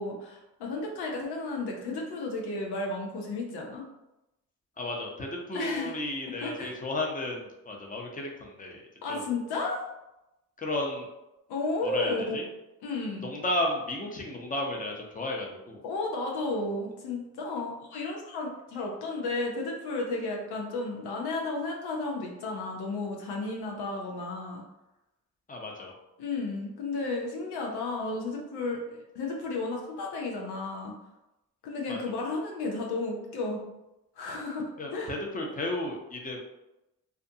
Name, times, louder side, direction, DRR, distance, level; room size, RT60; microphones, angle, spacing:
voice 1, 0.0-3.8 5.5-6.0 6.4-6.7 9.0-9.8 11.5-12.4 12.8-13.3 15.8-24.6 26.2-30.9 31.6-33.6 34.2-34.7 34.9-35.1, left 3 dB, 85° left, 0 dB, 0.6 m, -33 dB
voice 2, 4.8-9.2 10.6-11.1 11.8-12.5 13.2-15.8 25.5-25.9 31.9-32.0 34.8-36.4, left 1 dB, 20° left, 0 dB, 0.7 m, -33 dB
2.4 x 2.2 x 2.6 m, 0.93 s
supercardioid pair, 50°, 38 cm